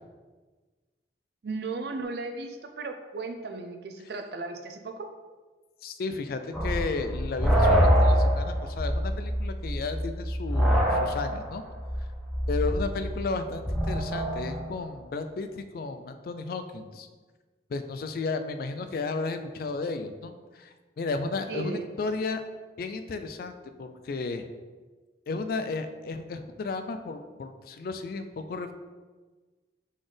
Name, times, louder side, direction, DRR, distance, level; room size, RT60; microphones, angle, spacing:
voice 1, 1.4-5.1 21.5-21.9, right 3 dB, 60° right, 6 dB, 0.4 m, -36 dB
voice 2, 5.8-11.6 12.5-17.1 17.7-22.4 22.8-24.4 25.3-28.7, left 3 dB, 55° left, 9 dB, 0.3 m, -33 dB
sound 1, 6.5-14.7, equal, ahead, 0.6 m, -25 dB
4.0 x 3.9 x 3.2 m, 1.3 s
head